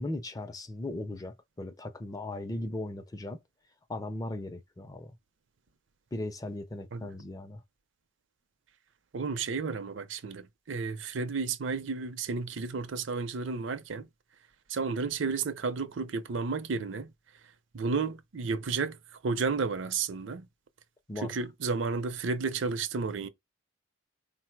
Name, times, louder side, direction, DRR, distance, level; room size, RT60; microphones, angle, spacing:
voice 1, 0.0-3.4 3.9-5.2 6.1-7.6 21.1-21.3, left 1 dB, 20° left, 0.4 m, -37 dB
voice 2, 9.1-14.1 14.7-17.1 17.7-19.0 19.2-20.5 21.2-23.3, right 4 dB, 65° right, 0.6 m, -32 dB
4.2 x 2.1 x 4.5 m
head